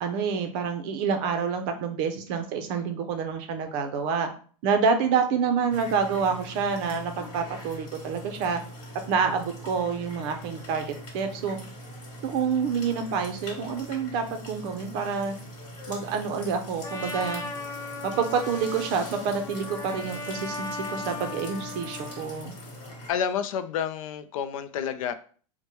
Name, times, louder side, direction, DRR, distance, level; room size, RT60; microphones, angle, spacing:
voice 1, 0.0-4.3 4.6-8.6 9.1-10.9 11.1-11.6 12.2-15.3 15.9-17.4 18.0-22.5, right 6 dB, 45° right, 6 dB, 0.6 m, -27 dB
sound 1, 5.7-23.1, equal, 40° left, 1.5 m, -42 dB
Trumpet, 16.8-22.3, left 3 dB, 25° left, 1.1 m, -37 dB
voice 2, 23.1-25.1, left 8 dB, 75° left, 10 dB, 0.4 m, -29 dB
4.5 x 2.1 x 3.0 m, 0.44 s
supercardioid pair, 160°, 17 cm